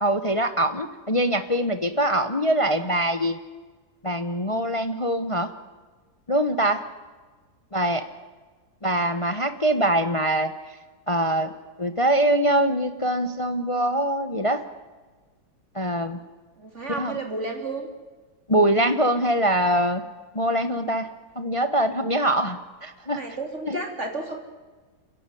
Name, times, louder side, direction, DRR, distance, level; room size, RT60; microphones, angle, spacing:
voice 1, 0.0-3.4 4.0-5.5 6.3-6.9 7.7-8.1 8.8-10.5 11.1-11.5 11.8-14.6 15.7-16.2 17.0-17.2 18.5-20.0 20.3-21.1 21.4-23.2 23.7-23.8, right 1 dB, 25° left, 10 dB, 0.7 m, -23 dB
voice 2, 16.6-17.9 23.1-24.4, right 2 dB, 35° right, 3 dB, 3.7 m, -32 dB
30.0 x 11.0 x 9.9 m, 1.4 s
omnidirectional pair, 2.1 m